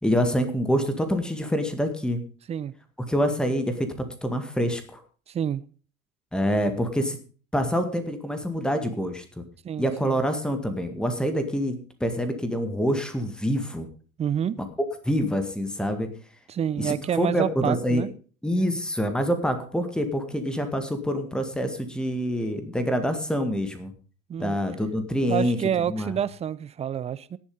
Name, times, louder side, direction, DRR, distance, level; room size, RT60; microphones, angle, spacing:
voice 1, 0.0-2.2 3.1-3.9 4.2-5.0 6.3-7.2 7.5-9.4 9.8-11.7 12.0-13.9 14.6-14.7 15.0-16.1 16.8-18.0 18.4-23.9 24.4-25.6 25.9-26.1, equal, ahead, 1.9 m, -26 dB
voice 2, 5.3-5.6 9.6-10.2 14.2-14.6 16.5-18.1 24.3-24.6 25.3-27.4, right 9 dB, 15° right, 0.5 m, -28 dB
18.5 x 7.2 x 5.3 m
figure-of-eight pair, 75°, 41 cm